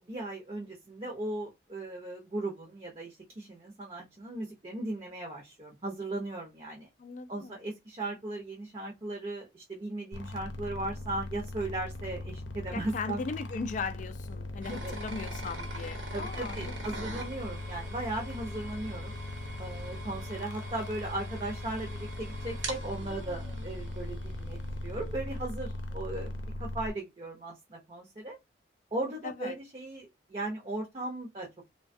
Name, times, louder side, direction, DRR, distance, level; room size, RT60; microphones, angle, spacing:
voice 1, 0.0-6.9 7.3-13.2 14.7-15.0 16.1-19.2 19.6-28.3 28.9-31.7, right 2 dB, 30° right, 0.6 m, -37 dB
voice 2, 7.0-7.6 12.7-17.1 29.2-29.6, left 4 dB, 40° left, 0.3 m, -38 dB
sound 1, 10.1-26.9, left 1 dB, 85° left, 0.6 m, -39 dB
sound 2, 14.6-25.4, right 2 dB, 85° right, 0.9 m, -44 dB
3.2 x 2.2 x 2.5 m
head